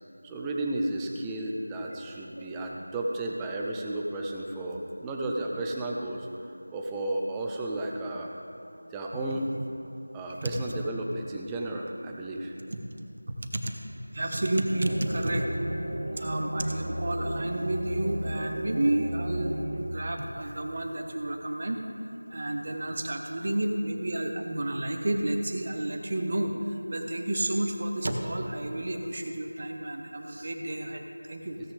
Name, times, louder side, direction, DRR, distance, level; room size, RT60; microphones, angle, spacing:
voice 1, 0.2-6.3 6.7-8.3 8.9-9.5 10.1-12.5, right 1 dB, 5° right, -1 dB, 0.5 m, -33 dB
voice 2, 13.4-13.7 14.1-15.5 16.2-21.8 22.3-31.6, right 1 dB, 40° right, 4 dB, 1.1 m, -31 dB
sound 1, 14.7-19.8, right 1 dB, 75° right, 1.7 m, -34 dB
16.0 x 9.7 x 3.4 m, 2.8 s
figure-of-eight pair, 170°, 0 cm